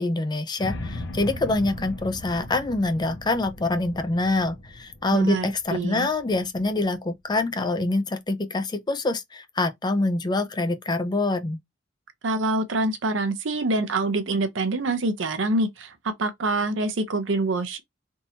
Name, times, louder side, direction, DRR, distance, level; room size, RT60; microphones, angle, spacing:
voice 1, 0.0-11.6, left 2 dB, 20° left, 0.5 m, -25 dB
sound 1, 0.6-6.7, left 1 dB, 65° left, 0.8 m, -38 dB
voice 2, 5.1-6.1 12.2-17.8, right 2 dB, 75° right, 0.6 m, -25 dB
3.6 x 2.7 x 2.8 m
head